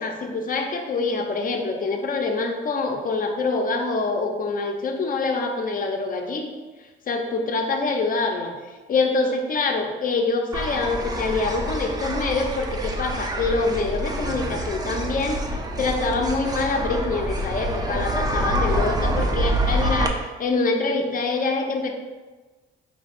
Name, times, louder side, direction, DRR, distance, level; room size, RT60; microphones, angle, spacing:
voice 1, 0.0-6.5 7.1-8.5 8.9-21.9, left 3 dB, 45° left, 3 dB, 0.6 m, -25 dB
sound 1, 10.5-20.1, right 1 dB, 20° right, 0.4 m, -26 dB
4.7 x 2.4 x 3.4 m, 1.3 s
cardioid pair, 90°, 20 cm